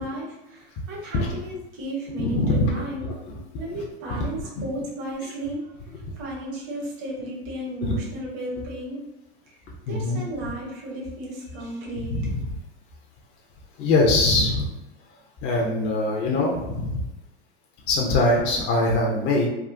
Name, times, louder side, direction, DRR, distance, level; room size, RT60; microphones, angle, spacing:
voice 1, 0.0-3.0 3.5-9.1 9.5-12.3, right 1 dB, 45° right, -3 dB, 1.0 m, -34 dB
voice 2, 2.2-2.7 3.0-3.1 4.1-4.2 7.8-7.9 9.9-10.2 12.1-12.5 13.8-14.7 15.4-17.0 17.9-19.5, left 2 dB, 35° left, -2 dB, 0.6 m, -22 dB
3.5 x 2.2 x 2.5 m, 0.96 s
hypercardioid pair, 110°, 33 cm